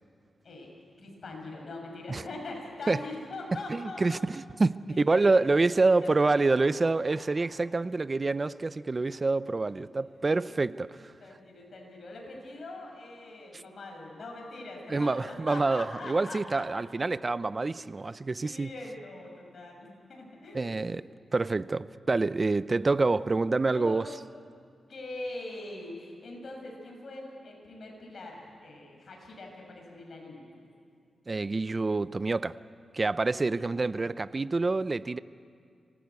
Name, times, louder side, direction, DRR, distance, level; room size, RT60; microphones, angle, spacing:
voice 1, 1.0-4.2 5.1-5.4 6.0-7.5 9.1-9.3 9.8-10.6 11.2-16.9 17.6-17.8 18.4-20.9 23.7-24.1 24.9-30.4 33.3-34.0, left 2 dB, 60° left, 6.5 m, -43 dB
voice 2, 3.7-11.0 13.5-13.6 14.9-18.7 20.5-21.0 21.3-24.1 31.3-32.5 32.9-35.2, right 3 dB, 35° right, 0.6 m, -27 dB
26.0 x 18.5 x 8.3 m
cardioid pair, 85°, 0 cm